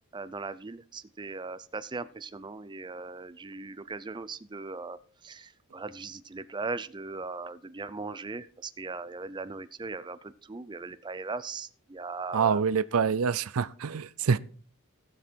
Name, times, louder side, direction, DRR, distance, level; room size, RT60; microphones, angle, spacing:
voice 1, 0.1-12.6, right 3 dB, 20° right, 0.4 m, -39 dB
voice 2, 12.3-14.4, right 6 dB, 70° right, 0.5 m, -26 dB
16.0 x 7.4 x 4.5 m
head